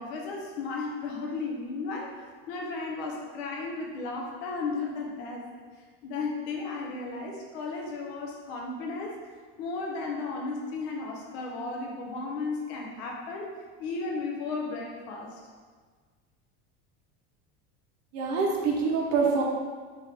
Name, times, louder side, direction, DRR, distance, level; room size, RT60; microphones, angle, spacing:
voice 1, 0.0-2.2 2.5-5.5 6.0-9.1 9.6-13.5 13.8-15.4, left 3 dB, 90° left, 0 dB, 0.9 m, -34 dB
voice 2, 18.1-19.4, right 4 dB, 55° right, -1 dB, 0.8 m, -25 dB
3.6 x 3.0 x 3.4 m, 1.6 s
cardioid pair, 150°, 32 cm